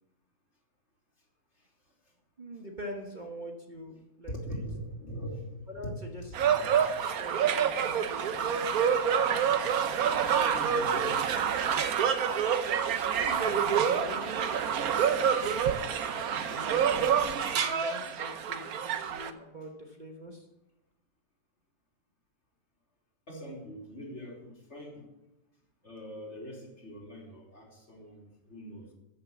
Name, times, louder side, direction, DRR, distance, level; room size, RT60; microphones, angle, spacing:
voice 1, 2.4-4.6 5.7-6.2 7.2-8.6 10.0-10.5 13.1-20.5, right 1 dB, 30° right, 1 dB, 1.4 m, -44 dB
voice 2, 4.3-7.0 10.4-11.3 23.3-25.1 25.8-28.9, equal, 45° left, -2 dB, 3.5 m, -42 dB
sound 1, 6.3-19.3, right 7 dB, 75° right, 1.3 m, -27 dB
14.5 x 6.8 x 7.2 m, 0.96 s
omnidirectional pair, 1.6 m